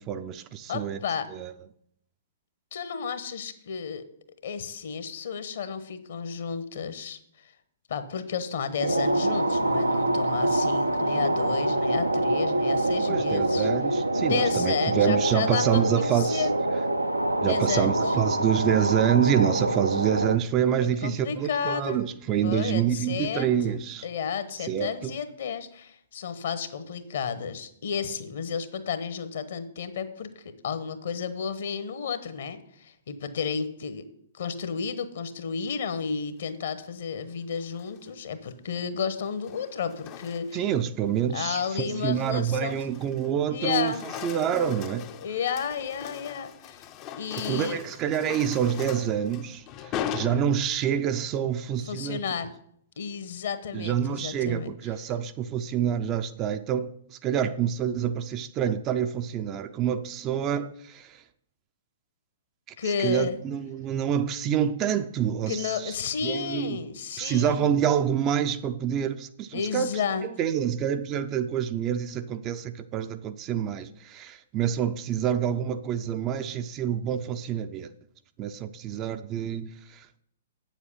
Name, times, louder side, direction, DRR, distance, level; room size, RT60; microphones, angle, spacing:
voice 1, 0.0-1.0 1.3-1.5 13.1-16.5 17.4-24.1 24.6-25.1 40.5-44.0 44.2-45.1 47.5-52.2 53.7-61.2 63.0-65.9 66.2-66.8 67.2-69.9 70.2-77.9 78.4-80.1, right 9 dB, 25° right, 0.5 m, -27 dB
voice 2, 0.7-1.3 2.7-4.0 4.4-7.5 7.9-13.7 14.2-16.6 17.4-18.1 21.0-22.0 22.4-23.8 24.0-34.0 34.3-40.7 41.3-42.8 43.5-44.0 45.2-46.9 47.1-47.8 51.9-52.5 53.0-54.7 62.8-63.4 65.5-67.7 69.5-70.3, left 6 dB, 55° left, 1.0 m, -32 dB
sound 1, 8.8-20.4, right 1 dB, 85° right, 0.6 m, -25 dB
sound 2, 37.6-38.1 39.2-40.7 41.2-41.5 41.9-43.4 43.6-51.0, left 9 dB, 30° left, 0.5 m, -40 dB
8.3 x 7.3 x 5.5 m
figure-of-eight pair, 115°, 0 cm